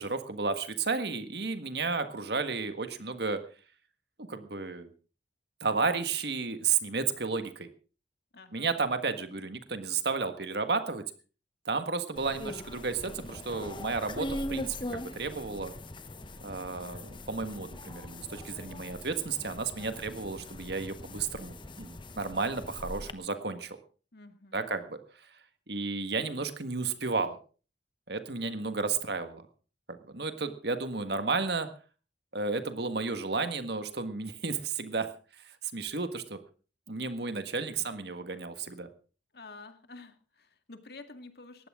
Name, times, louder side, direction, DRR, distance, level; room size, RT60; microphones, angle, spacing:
voice 1, 0.0-3.4 4.3-4.9 5.6-7.7 8.5-11.0 11.6-15.7 16.4-23.8 24.5-25.0 25.7-27.4 28.1-29.4 29.9-31.7 32.3-35.1 35.7-36.4 36.9-38.9, right 4 dB, 60° right, 9 dB, 1.7 m, -32 dB
voice 2, 8.3-8.7 24.1-24.7 39.3-41.7, left 3 dB, 55° left, 8 dB, 2.1 m, -49 dB
sound 1, 12.2-23.1, left 1 dB, 25° left, 1.0 m, -41 dB
19.5 x 15.0 x 3.8 m, 0.37 s
head